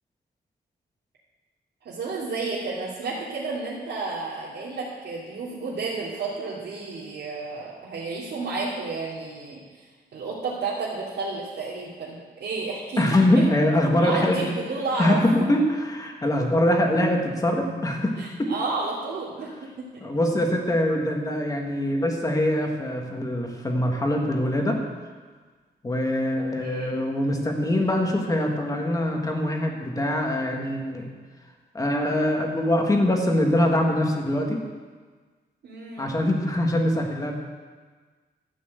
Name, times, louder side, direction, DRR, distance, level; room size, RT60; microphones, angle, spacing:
voice 1, 1.8-9.8 10.1-13.4 14.0-15.5 18.2-20.0 26.4-26.9 35.6-36.2, right 3 dB, 85° right, -8 dB, 2.9 m, -31 dB
voice 2, 13.0-14.4 15.0-18.5 20.0-24.8 25.8-31.1 31.7-34.6 36.0-37.3, left 1 dB, 20° left, 1 dB, 1.7 m, -23 dB
13.0 x 9.1 x 8.0 m, 1.4 s
wide cardioid pair, 170°, 17 cm